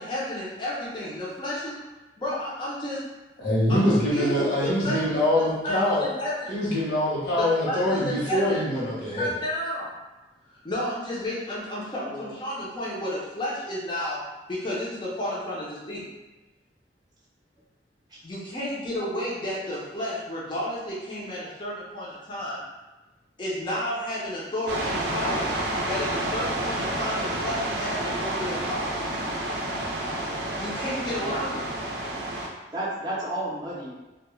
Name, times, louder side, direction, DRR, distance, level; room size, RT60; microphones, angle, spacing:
voice 1, 0.0-1.7 2.2-3.0 3.7-5.0 5.6-6.5 7.4-8.6 9.1-9.9 10.6-14.2 14.5-16.0 18.2-22.6 23.4-25.5 25.9-29.0 30.6-31.6, left 1 dB, 30° left, -7 dB, 0.5 m, -31 dB
voice 2, 3.4-6.1 6.5-9.3, left 1 dB, 70° left, -7 dB, 0.9 m, -24 dB
voice 3, 12.1-12.4 18.1-18.2 31.2-31.7 32.7-33.9, right 1 dB, 25° right, -6 dB, 0.6 m, -33 dB
sound 1, 24.7-32.5, right 1 dB, 70° right, 0.5 m, -29 dB
2.2 x 2.1 x 3.0 m, 1.1 s
head